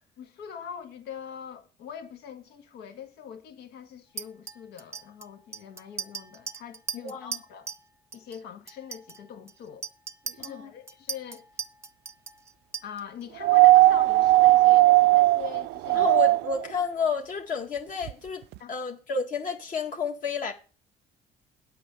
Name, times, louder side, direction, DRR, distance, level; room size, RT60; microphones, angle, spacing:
voice 1, 0.2-7.7 8.1-9.9 10.3-11.4 12.8-16.1 18.6-18.7, left 8 dB, 85° left, 1.7 m, -43 dB
Chink clink, 4.2-7.9 8.1-8.4 8.7-13.2, right 5 dB, 15° right, 0.7 m, -39 dB
voice 2, 6.9-7.4 10.4-10.7 15.9-18.4 18.7-20.5, left 5 dB, 50° left, 1.9 m, -31 dB
sound 1, 13.4-16.7 18.1-18.2, right 19 dB, 80° right, 0.4 m, -18 dB
8.7 x 5.3 x 7.9 m
cardioid pair, 110°, 17 cm